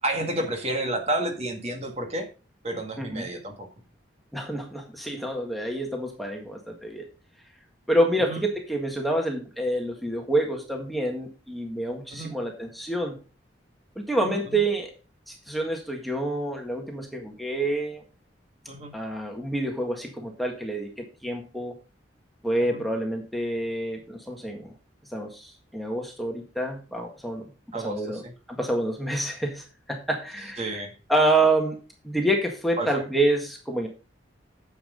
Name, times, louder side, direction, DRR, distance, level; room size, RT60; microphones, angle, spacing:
voice 1, 0.0-2.3 2.6-3.7 8.2-8.4 12.1-12.3 14.2-14.6 18.7-18.9 22.6-22.8 27.7-28.3 30.6-30.9 32.8-33.0, right 1 dB, 35° right, 4 dB, 1.9 m, -31 dB
voice 2, 4.3-7.1 7.9-13.2 13.9-14.9 15.3-18.0 18.9-21.7 22.4-24.7 25.1-27.4 27.7-28.2 28.5-30.8 31.1-33.9, right 1 dB, ahead, 1 dB, 1.7 m, -27 dB
10.0 x 7.2 x 3.9 m, 0.34 s
head